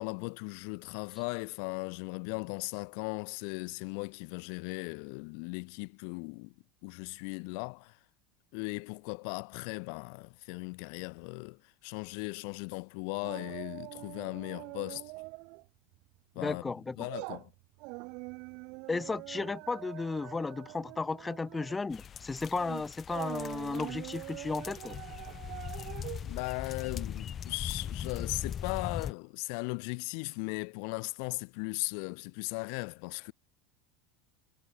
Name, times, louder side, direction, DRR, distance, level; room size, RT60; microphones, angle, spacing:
voice 1, 0.0-6.5 6.8-8.0 8.5-15.1 16.3-17.5 26.2-33.3, left 40 dB or more, 55° left, 4.1 m, -38 dB
sound 1, 13.2-15.7 16.0-16.2 16.6-27.6 27.9-28.0, right 30 dB, 55° right, 3.7 m, -44 dB
voice 2, 16.4-17.1 18.9-25.0, left 3 dB, 15° left, 4.8 m, -34 dB
sound 2, 21.9-29.1, left 8 dB, 35° left, 1.5 m, -40 dB
figure-of-eight pair, 75°, 0 cm